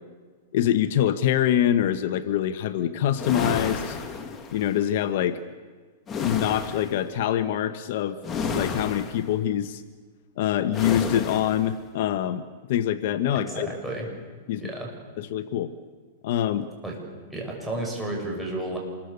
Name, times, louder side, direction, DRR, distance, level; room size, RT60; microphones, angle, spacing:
voice 1, 0.5-4.0 4.5-5.4 6.2-8.2 8.5-9.8 10.4-12.4 12.7-13.7 14.5-14.7 15.2-15.7 16.2-16.7, left 11 dB, 60° left, 10 dB, 1.1 m, -24 dB
sound 1, 3.1-4.8 6.1-7.0 8.2-9.3 10.7-11.7, left 5 dB, 20° left, 2.2 m, -31 dB
voice 2, 13.3-14.1 14.5-14.9 16.8-17.0 17.3-18.8, right 1 dB, 5° right, -1 dB, 6.7 m, -32 dB
27.5 x 22.0 x 6.8 m, 1.5 s
hypercardioid pair, 145°, 0 cm